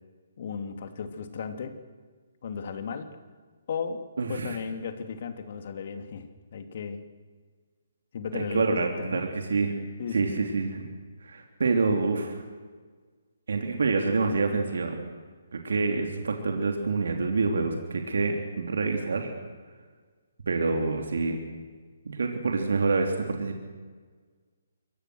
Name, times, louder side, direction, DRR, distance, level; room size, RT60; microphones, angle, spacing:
voice 1, 0.4-1.8 2.4-3.1 3.7-4.0 4.3-7.0 8.1-9.2 10.0-10.5, left 6 dB, 50° left, 7 dB, 2.9 m, -35 dB
voice 2, 4.2-4.6 8.3-9.7 10.1-10.9 11.2-12.4 13.5-15.0 15.5-19.3 20.5-21.4 22.0-23.6, right 4 dB, 65° right, 3 dB, 3.2 m, -27 dB
27.5 x 23.5 x 6.4 m, 1.5 s
figure-of-eight pair, 140°, 0 cm